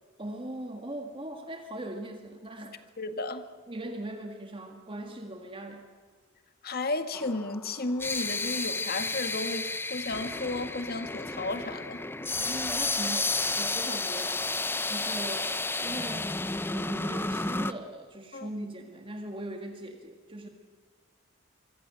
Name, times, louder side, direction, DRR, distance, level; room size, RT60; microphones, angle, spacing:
voice 1, 0.2-2.8 3.7-5.9 12.4-14.4 14.9-15.5 15.8-16.3 16.7-20.5, right 1 dB, 25° right, 4 dB, 1.9 m, -40 dB
voice 2, 3.0-3.5 6.6-12.0 18.3-18.5, left 2 dB, 50° left, 9 dB, 1.9 m, -33 dB
sound 1, 7.1-17.7, left 3 dB, 10° left, 0.8 m, -32 dB
26.0 x 24.0 x 7.6 m, 1.5 s
head